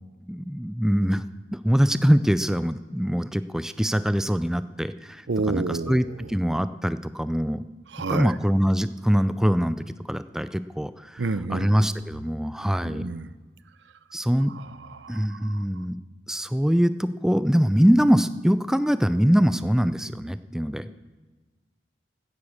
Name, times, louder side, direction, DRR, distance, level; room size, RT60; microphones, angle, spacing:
voice 1, 0.3-1.2 1.5-7.6 8.0-13.0 14.1-14.5 15.1-16.0 16.3-20.8, equal, 5° right, 13 dB, 0.4 m, -23 dB
voice 2, 5.3-6.3 7.9-8.4 11.2-11.7 12.8-13.3 14.5-15.6, right 3 dB, 85° right, 15 dB, 0.7 m, -30 dB
16.0 x 9.7 x 6.4 m, 1.3 s
head